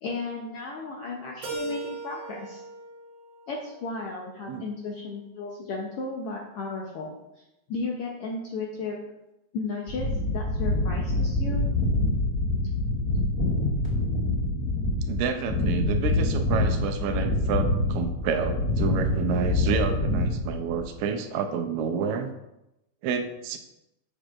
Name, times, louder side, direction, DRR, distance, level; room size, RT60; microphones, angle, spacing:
voice 1, 0.0-2.6 3.5-7.2 7.7-9.0 9.5-11.6, left 3 dB, 80° left, -1 dB, 1.3 m, -34 dB
Keyboard (musical), 1.4-4.3, right 2 dB, 55° right, 1.4 m, -39 dB
sound 1, 9.9-21.0, left 2 dB, 5° left, 1.7 m, -26 dB
voice 2, 15.1-22.3 23.0-23.6, right 6 dB, 80° right, 6 dB, 1.9 m, -29 dB
7.7 x 6.4 x 2.4 m, 0.90 s
omnidirectional pair, 3.5 m